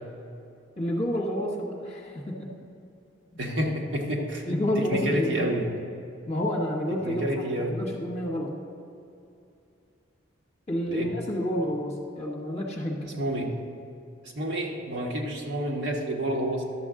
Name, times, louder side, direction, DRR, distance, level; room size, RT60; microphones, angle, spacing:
voice 1, 0.8-2.5 4.5-5.5 6.3-7.2 7.6-8.5 10.7-13.1, equal, 35° left, -2 dB, 1.2 m, -29 dB
voice 2, 3.4-5.7 7.0-7.7 10.9-11.1 13.0-13.5 14.2-16.6, right 1 dB, 60° right, -1 dB, 1.3 m, -29 dB
11.5 x 7.1 x 3.7 m, 2.6 s
head